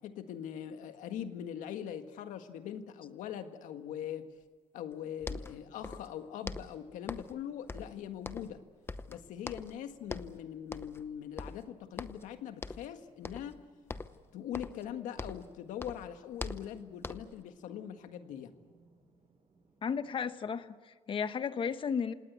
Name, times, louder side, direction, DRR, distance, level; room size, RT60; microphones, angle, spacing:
voice 1, 0.0-4.3 4.7-8.6 9.1-13.6 14.3-18.5, left 9 dB, 90° left, 8 dB, 1.7 m, -42 dB
sound 1, 4.9-5.0 5.2-6.2 6.4-7.4 7.7-8.6 8.9-9.8 10.1-10.4 10.7-11.1 11.4-12.3 12.6-12.9 13.2-13.6 13.9-15.5 15.8-17.4, left 3 dB, 20° left, 0.8 m, -42 dB
sound 2, 5.3-20.3, right 2 dB, 45° right, 7.0 m, -69 dB
voice 2, 19.8-22.1, left 6 dB, 40° left, 12 dB, 1.1 m, -34 dB
27.0 x 19.0 x 8.3 m, 1.4 s
cardioid pair, 125°, 13 cm